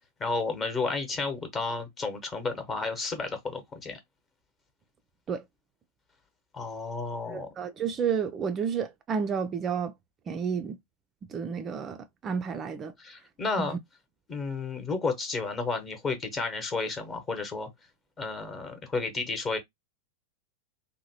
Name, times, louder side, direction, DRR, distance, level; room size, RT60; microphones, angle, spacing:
voice 1, 0.2-4.0 6.5-7.5 13.0-13.8 14.3-17.7 18.2-19.6, left 3 dB, 25° left, 0.9 m, -32 dB
voice 2, 7.3-9.9 10.3-10.8 11.3-12.9 13.6-13.7, right 6 dB, 30° right, 0.3 m, -31 dB
2.8 x 2.1 x 2.7 m
figure-of-eight pair, 90°, 0 cm